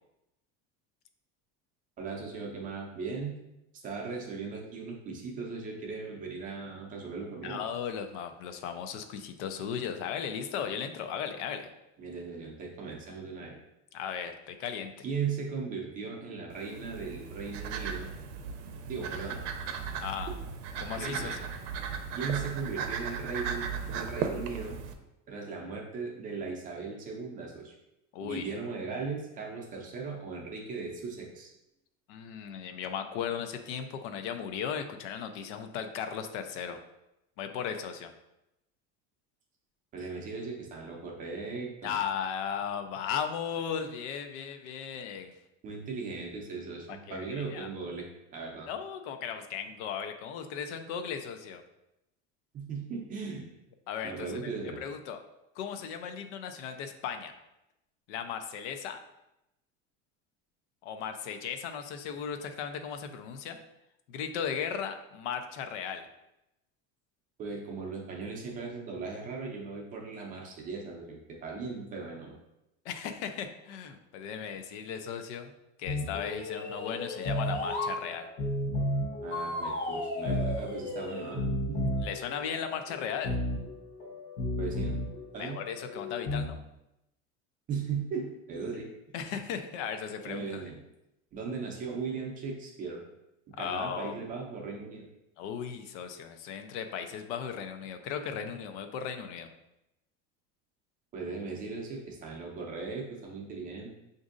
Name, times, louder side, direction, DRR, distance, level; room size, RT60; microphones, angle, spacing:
voice 1, 2.0-3.4 3.8-7.7 12.0-13.6 15.0-18.1 18.5-19.4 20.9-21.4 22.2-24.8 25.3-27.7 28.2-31.5 39.9-41.9 45.6-48.1 48.3-48.7 52.5-53.5 54.0-54.8 67.4-72.3 79.2-81.9 84.6-85.0 85.3-85.6 87.7-88.9 90.2-90.8 91.3-93.0 93.6-95.1 101.1-103.9, right 5 dB, 25° right, 0 dB, 0.5 m, -38 dB
voice 2, 7.4-11.7 13.9-14.9 20.0-20.3 20.8-21.5 28.1-28.5 32.1-36.8 37.4-38.1 41.8-45.3 46.9-47.7 48.7-51.6 53.9-55.2 55.6-57.3 58.1-59.0 60.8-63.6 64.1-66.1 72.8-75.5 75.8-78.3 82.0-83.4 85.4-86.6 89.1-90.6 93.6-94.2 95.4-99.5, left 7 dB, 90° left, 7 dB, 0.6 m, -36 dB
sound 1, 16.5-24.9, right 6 dB, 80° right, 0.6 m, -36 dB
sound 2, 75.9-86.4, left 1 dB, 65° left, 1.0 m, -34 dB
sound 3, 76.1-78.0 79.3-81.4, left 2 dB, 35° left, 0.6 m, -36 dB
6.0 x 2.6 x 2.5 m, 0.90 s
cardioid pair, 170°, 34 cm